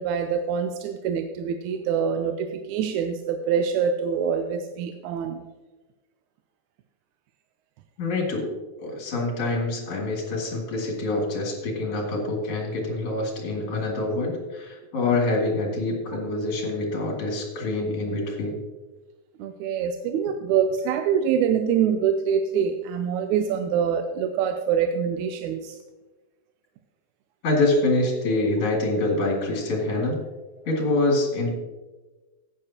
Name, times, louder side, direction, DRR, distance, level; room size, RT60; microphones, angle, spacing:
voice 1, 0.0-5.4 8.9-9.0 19.4-25.8, right 7 dB, 80° right, 7 dB, 2.0 m, -25 dB
voice 2, 8.0-8.5 8.8-18.6 27.4-30.2 30.6-31.5, left 2 dB, 55° left, -1 dB, 3.4 m, -25 dB
14.5 x 9.7 x 2.9 m, 1.2 s
omnidirectional pair, 3.5 m